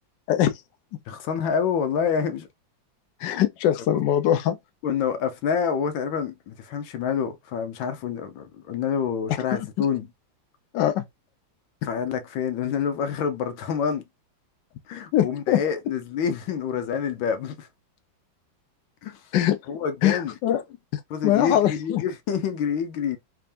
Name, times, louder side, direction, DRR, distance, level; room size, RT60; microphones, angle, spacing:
voice 1, 0.3-0.6 0.9-1.0 3.2-4.6 9.3-9.4 9.8-9.9 10.7-11.0 15.1-15.6 19.3-19.6 20.0-20.6 21.2-22.0, left 11 dB, 70° left, 1.3 m, -22 dB
voice 2, 1.1-2.5 3.9-4.0 4.8-10.1 11.8-14.0 14.9-17.7 19.0-19.2 19.7-20.3 21.1-23.2, left 7 dB, 90° left, 1.5 m, -27 dB
3.5 x 3.4 x 2.5 m
omnidirectional pair, 2.1 m